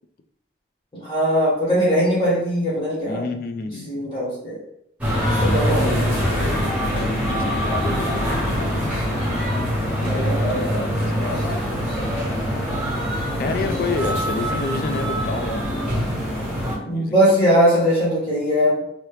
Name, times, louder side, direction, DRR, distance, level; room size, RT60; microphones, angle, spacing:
voice 1, 0.9-3.2 3.8-4.6 5.2-6.4 10.0-10.7 11.0-11.4 13.4-14.0 16.8-18.8, equal, 30° left, -7 dB, 1.2 m, -21 dB
voice 2, 3.0-3.9 5.3-8.9 10.0-11.4 13.4-15.7 16.9-17.4, left 4 dB, 50° left, 7 dB, 0.3 m, -30 dB
sound 1, 5.0-16.8, equal, 10° right, 1.0 m, -23 dB
2.9 x 2.8 x 3.1 m, 0.73 s
head